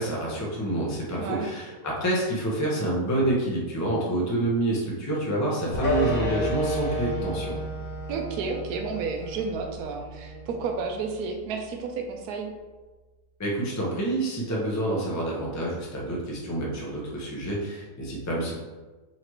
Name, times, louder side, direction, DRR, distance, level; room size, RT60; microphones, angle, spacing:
voice 1, 0.0-7.6 13.4-18.5, right 1 dB, 20° left, -4 dB, 0.5 m, -28 dB
sound 1, 5.7-12.1, right 1 dB, 80° left, 1.7 m, -37 dB
sound 2, 5.8-10.9, left 1 dB, 40° left, 1.0 m, -32 dB
voice 2, 8.1-12.5, right 4 dB, 80° right, 3 dB, 1.1 m, -31 dB
4.0 x 3.2 x 3.0 m, 1.2 s
omnidirectional pair, 1.7 m